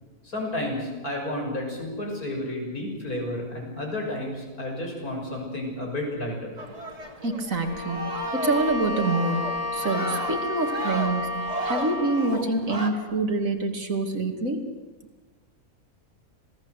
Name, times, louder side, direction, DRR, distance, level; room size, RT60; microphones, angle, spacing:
voice 1, 0.2-6.5, left 1 dB, 70° left, 0 dB, 7.1 m, -31 dB
sound 1, 6.6-12.9, right 1 dB, 25° right, 2.6 m, -35 dB
voice 2, 7.2-11.3 11.6-14.6, right 2 dB, 60° right, 5 dB, 2.8 m, -26 dB
Bowed string instrument, 7.6-12.4, left 2 dB, 10° left, 3.9 m, -31 dB
27.0 x 18.0 x 8.2 m, 1.3 s
omnidirectional pair, 1.6 m